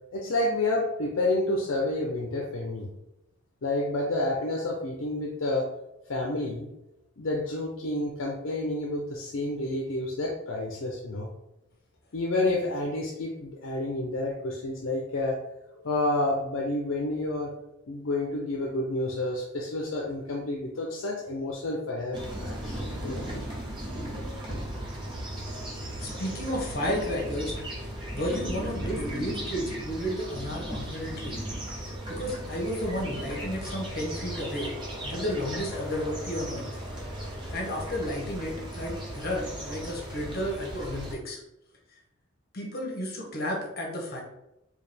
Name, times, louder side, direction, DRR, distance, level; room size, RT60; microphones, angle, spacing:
voice 1, 0.1-2.9 3.6-5.7 6.1-6.7 7.2-11.3 12.1-15.4 15.8-17.5 17.9-23.3, left 2 dB, 70° left, -1 dB, 0.6 m, -29 dB
sound 1, 22.1-41.1, right 1 dB, 25° right, 0.9 m, -36 dB
voice 2, 26.0-27.5 28.1-31.4 31.8-34.7 35.0-36.7 37.5-41.4 42.5-44.2, equal, 50° left, -1 dB, 1.0 m, -32 dB
4.5 x 2.4 x 3.4 m, 0.89 s
head